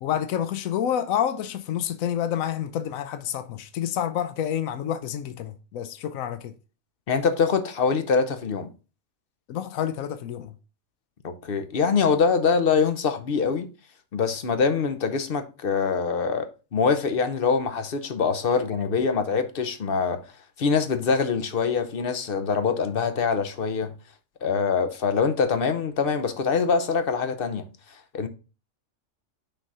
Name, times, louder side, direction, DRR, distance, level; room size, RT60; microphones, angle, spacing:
voice 1, 0.0-6.5 9.5-10.5, left 10 dB, 80° left, 1.1 m, -28 dB
voice 2, 7.1-8.7 11.2-13.7 14.1-20.2 20.6-23.9 24.4-27.7 28.1-28.3, left 5 dB, 50° left, 0.8 m, -24 dB
6.1 x 3.4 x 5.4 m
omnidirectional pair, 1.4 m